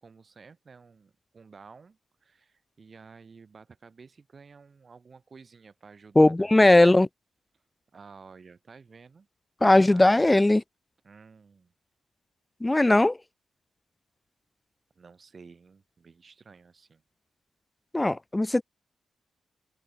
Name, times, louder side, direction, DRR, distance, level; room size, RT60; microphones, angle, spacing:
voice 1, 0.0-6.9 7.9-9.3 9.9-10.3 11.0-11.7 15.0-17.0, right 5 dB, 50° right, 4.5 m, -52 dB
voice 2, 6.2-7.1 9.6-10.6 12.6-13.2 17.9-18.6, left 2 dB, 20° left, 0.4 m, -19 dB
supercardioid pair, 45°, 0 cm